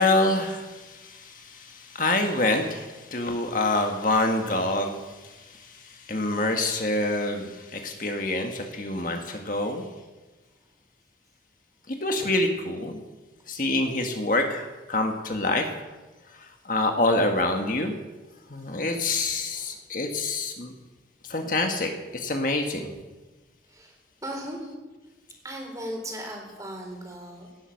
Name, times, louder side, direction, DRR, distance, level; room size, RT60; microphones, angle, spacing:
voice 1, 0.0-9.8 11.9-13.0 13.5-15.7 16.4-17.9 18.5-20.7 21.3-22.9, left 2 dB, 45° left, 4 dB, 1.6 m, -26 dB
voice 2, 24.2-24.6 25.4-27.5, right 1 dB, 20° right, 1 dB, 4.0 m, -37 dB
18.0 x 12.5 x 6.5 m, 1.2 s
head